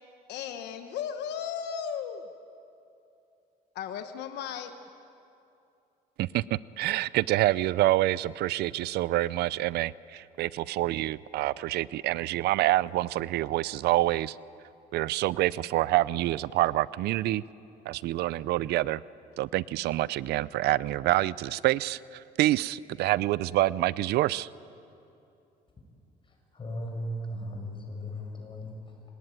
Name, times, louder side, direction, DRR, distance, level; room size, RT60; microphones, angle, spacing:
voice 1, 0.3-2.2 3.7-4.7, left 8 dB, 80° left, 7 dB, 1.2 m, -35 dB
voice 2, 6.2-14.4 14.9-17.4 17.9-19.0 19.4-24.5, right 16 dB, 75° right, 20 dB, 0.5 m, -27 dB
voice 3, 26.2-29.0, equal, 30° left, 2 dB, 6.8 m, -37 dB
26.5 x 19.0 x 9.1 m, 2.7 s
cardioid pair, 110°, 17 cm